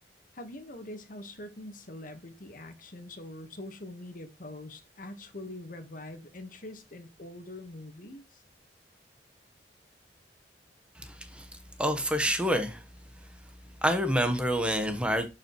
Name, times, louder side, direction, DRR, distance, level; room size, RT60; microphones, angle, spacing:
voice 1, 0.3-8.4, left 1 dB, 50° left, 1.3 m, -44 dB
voice 2, 11.0-11.5 11.8-12.8 13.8-15.3, equal, 5° right, 1.1 m, -27 dB
11.5 x 5.6 x 3.1 m
head